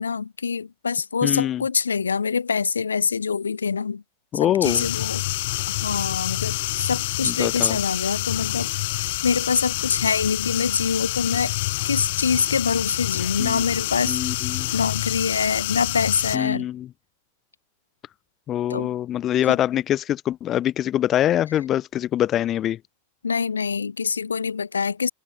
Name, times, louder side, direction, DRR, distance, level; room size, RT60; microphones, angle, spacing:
voice 1, 0.0-4.0 4.4-5.2 5.7-8.7 9.0-11.5 11.8-14.2 14.7-16.7 18.7-18.9 19.5-19.6 23.2-25.1, left 5 dB, 75° left, 0.8 m, -25 dB
voice 2, 1.2-1.6 4.3-4.9 7.2-7.8 13.4-13.6 14.0-14.7 16.3-16.9 18.5-22.8, left 11 dB, 30° left, 1.4 m, -24 dB
sound 1, 4.6-16.4, left 18 dB, 50° left, 2.0 m, -27 dB
figure-of-eight pair, 90°, 0 cm